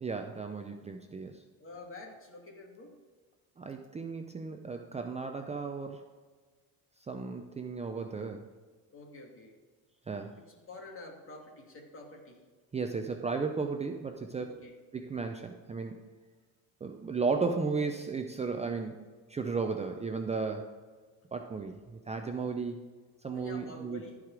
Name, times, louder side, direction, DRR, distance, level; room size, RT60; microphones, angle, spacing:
voice 1, 0.0-1.4 3.6-6.0 7.1-8.5 10.1-10.4 12.7-14.6 14.9-16.0 16.8-20.8 21.3-22.8 23.2-24.0, right 4 dB, 20° right, 5 dB, 0.6 m, -35 dB
voice 2, 1.6-2.9 8.9-9.5 10.4-12.4 14.4-14.7 23.3-24.2, left 2 dB, 35° left, 0 dB, 2.5 m, -48 dB
14.5 x 5.0 x 4.8 m, 1.5 s
cardioid pair, 105°, 36 cm